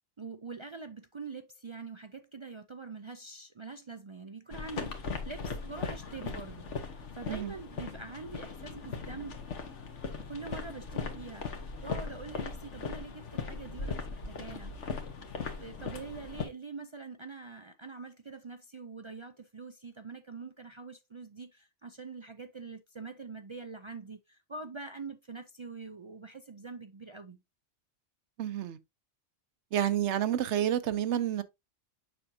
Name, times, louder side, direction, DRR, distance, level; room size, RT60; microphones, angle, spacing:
voice 1, 0.2-9.4 10.3-14.7 15.6-27.4, right 4 dB, 45° right, 0.3 m, -44 dB
sound 1, 4.5-16.5, left 5 dB, 90° left, 1.4 m, -39 dB
voice 2, 28.4-28.8 29.7-31.4, right 10 dB, 80° right, 1.0 m, -29 dB
7.0 x 5.9 x 2.7 m
omnidirectional pair, 1.2 m